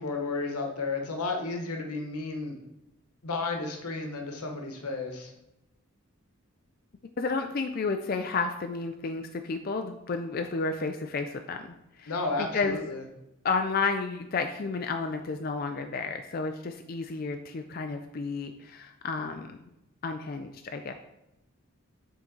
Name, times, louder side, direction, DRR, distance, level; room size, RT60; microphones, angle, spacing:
voice 1, 0.0-2.6 3.2-5.3 12.1-13.0, left 3 dB, 90° left, 3 dB, 1.0 m, -32 dB
voice 2, 7.2-11.6 12.0-12.1 12.5-12.8 13.4-19.5 20.0-20.9, left 4 dB, 40° left, 6 dB, 0.3 m, -31 dB
7.2 x 3.8 x 3.9 m, 0.91 s
head